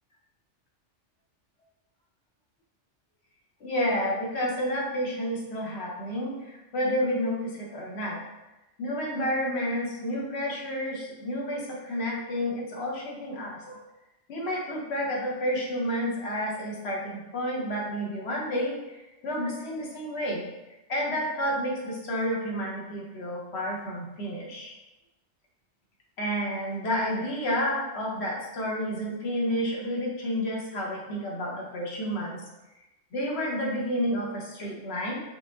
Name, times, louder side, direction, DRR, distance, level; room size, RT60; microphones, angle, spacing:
voice 1, 3.6-8.2 8.8-13.8 14.3-20.5 20.9-24.7 26.2-32.4 33.1-35.2, equal, 65° left, -2 dB, 1.1 m, -30 dB
5.1 x 2.1 x 3.4 m, 1.0 s
omnidirectional pair, 1.2 m